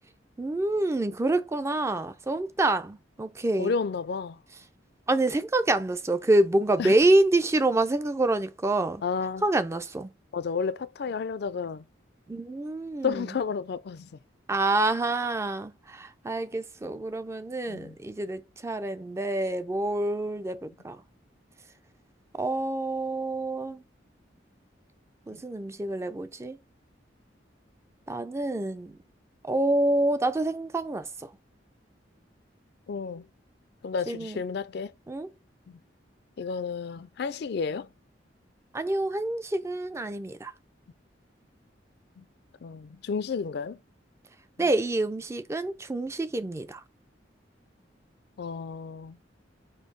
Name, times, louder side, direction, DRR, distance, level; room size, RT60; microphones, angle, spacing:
voice 1, 0.4-3.7 5.1-9.0 9.4-10.1 12.3-13.4 14.5-21.0 22.3-23.8 25.3-26.6 28.1-29.0 29.4-31.3 34.1-34.4 35.1-35.3 38.7-40.5 44.6-46.8, right 2 dB, 15° right, 0.3 m, -27 dB
voice 2, 3.6-4.4 6.8-6.9 9.0-9.4 10.3-11.8 13.0-14.1 17.7-18.0 32.9-33.3 33.8-34.9 35.7-35.8 36.4-37.9 42.2-42.3 42.6-43.8 48.4-49.2, left 5 dB, 60° left, 0.4 m, -31 dB
4.5 x 2.6 x 4.5 m
head